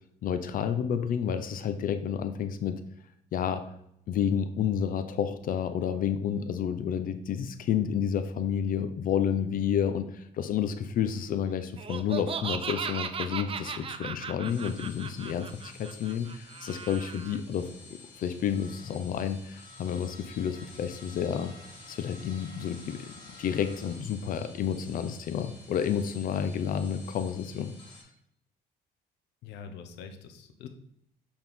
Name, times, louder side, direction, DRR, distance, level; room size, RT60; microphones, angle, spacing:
voice 1, 0.2-2.8 3.3-3.7 4.1-17.7 18.2-21.5 21.9-27.7, left 8 dB, 55° left, 10 dB, 0.6 m, -30 dB
Laughter, 11.8-17.4, right 7 dB, 35° right, 0.5 m, -37 dB
sound 1, 14.3-28.0, left 3 dB, 30° left, 2.7 m, -50 dB
voice 2, 29.4-30.7, left 6 dB, 85° left, 7 dB, 0.9 m, -44 dB
7.8 x 4.4 x 3.6 m, 0.72 s
cardioid pair, 110°, 17 cm